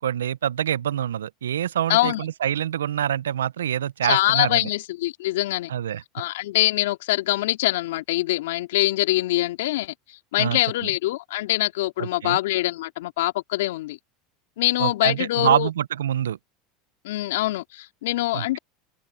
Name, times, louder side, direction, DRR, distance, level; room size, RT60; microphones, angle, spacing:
voice 1, 0.0-4.7 5.7-6.0 10.4-10.9 12.0-12.4 14.8-16.4 18.3-18.6, right 10 dB, 85° right, 0.7 m, -26 dB
voice 2, 1.9-2.2 4.0-5.7 6.1-14.0 14.6-15.7 17.0-18.6, left 17 dB, 75° left, 2.5 m, -24 dB
open air
hypercardioid pair, 85°, 0 cm